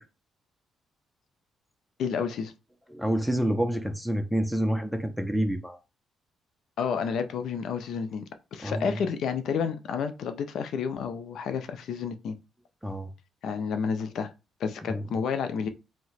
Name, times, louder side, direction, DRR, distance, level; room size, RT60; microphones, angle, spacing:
voice 1, 2.0-2.5 6.8-8.2 8.5-12.4 13.4-14.3 14.6-15.7, left 6 dB, 70° left, 0.4 m, -30 dB
voice 2, 2.9-5.8 8.6-9.0 12.8-13.1 14.9-15.0, equal, ahead, 0.5 m, -28 dB
2.8 x 2.1 x 4.0 m
cardioid pair, 90°, 0 cm